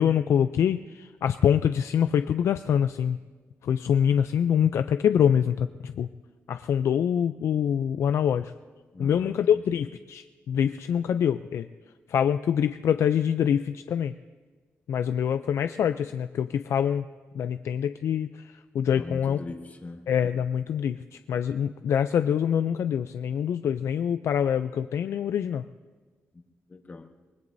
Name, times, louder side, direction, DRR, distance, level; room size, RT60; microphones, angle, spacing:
voice 1, 0.0-3.2 3.6-6.1 6.5-8.5 9.0-11.7 12.1-14.1 14.9-17.0 17.3-19.4 20.1-25.6, left 8 dB, 75° left, 10 dB, 0.4 m, -25 dB
voice 2, 8.9-9.6 18.9-20.0 26.3-26.4 26.7-27.1, left 3 dB, 35° left, 3 dB, 1.4 m, -40 dB
24.5 x 20.0 x 2.7 m, 1.4 s
cardioid pair, 90°, 5 cm